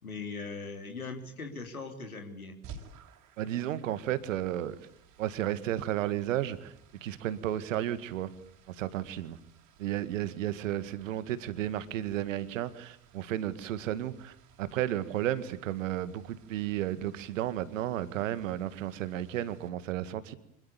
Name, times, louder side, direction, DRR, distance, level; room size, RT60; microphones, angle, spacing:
voice 1, 0.0-2.5, left 4 dB, 80° left, 3.3 m, -40 dB
sound 1, 2.6-19.7, right 5 dB, 45° right, 5.1 m, -57 dB
voice 2, 3.4-4.8 5.2-6.7 7.0-8.3 8.7-9.4 9.8-20.3, right 12 dB, 65° right, 2.0 m, -33 dB
26.0 x 21.0 x 8.6 m
figure-of-eight pair, 70°, 42 cm